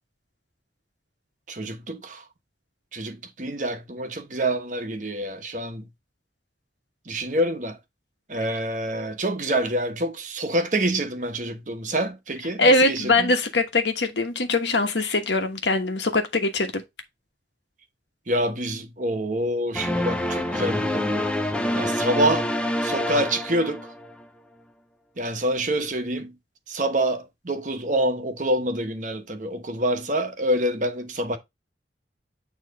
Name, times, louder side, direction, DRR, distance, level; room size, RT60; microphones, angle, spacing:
voice 1, 1.5-2.2 2.9-5.9 7.1-7.8 8.3-13.3 18.3-21.3 21.7-22.5 22.8-23.9 25.2-26.3 26.7-31.4, right 1 dB, 45° right, 1.0 m, -26 dB
voice 2, 12.6-16.8, left 2 dB, 80° left, 1.2 m, -22 dB
sound 1, 19.7-24.2, left 1 dB, 5° left, 0.5 m, -26 dB
9.0 x 3.1 x 4.0 m
head